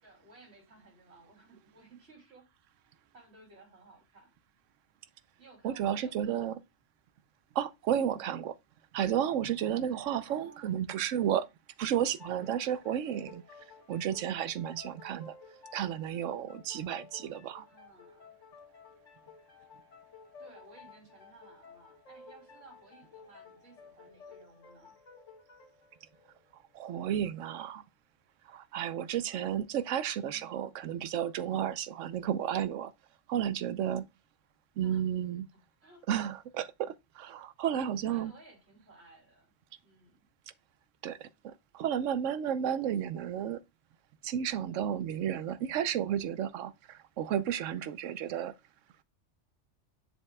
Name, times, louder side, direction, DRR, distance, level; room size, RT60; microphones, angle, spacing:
voice 1, 0.0-2.5 3.1-4.3 5.4-6.5 10.3-10.8 17.6-18.4 20.4-25.0 30.1-30.6 34.8-36.1 38.0-39.5 39.8-40.2, right 3 dB, 60° right, 3.1 m, -57 dB
voice 2, 5.6-6.5 7.6-8.5 8.9-11.5 11.8-13.4 13.9-15.3 15.7-17.6 26.7-27.8 28.5-32.9 33.3-34.1 34.8-35.4 36.1-38.3 41.0-43.6 44.2-48.5, right 9 dB, 90° right, 1.0 m, -32 dB
sound 1, 12.0-27.3, left 5 dB, 80° left, 1.7 m, -55 dB
7.4 x 6.4 x 2.2 m
omnidirectional pair, 1.2 m